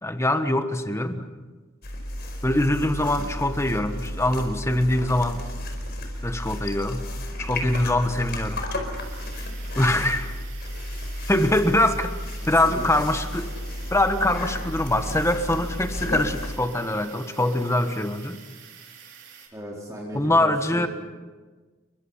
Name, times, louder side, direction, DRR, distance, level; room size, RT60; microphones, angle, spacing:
voice 1, 0.0-1.3 2.4-5.4 6.2-7.0 7.4-8.6 9.7-10.3 11.3-12.1 12.5-13.5 13.9-18.4 20.1-20.9, left 1 dB, 15° left, 8 dB, 1.4 m, -23 dB
sound 1, 1.8-16.6, left 1 dB, 50° left, 4.7 m, -33 dB
sound 2, 9.0-19.5, right 8 dB, 55° right, 4.8 m, -47 dB
voice 2, 19.5-20.9, equal, 15° right, -4 dB, 4.2 m, -36 dB
29.5 x 23.5 x 5.8 m, 1.3 s
head